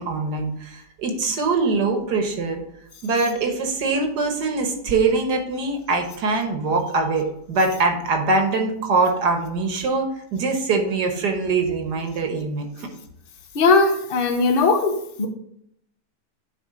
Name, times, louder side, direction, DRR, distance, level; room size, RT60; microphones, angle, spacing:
voice 1, 0.0-2.6 3.0-12.9, right 3 dB, 75° right, 4 dB, 1.7 m, -23 dB
voice 2, 13.5-15.3, left 3 dB, 40° left, 4 dB, 0.9 m, -19 dB
9.7 x 4.4 x 3.8 m, 0.73 s
omnidirectional pair, 1.8 m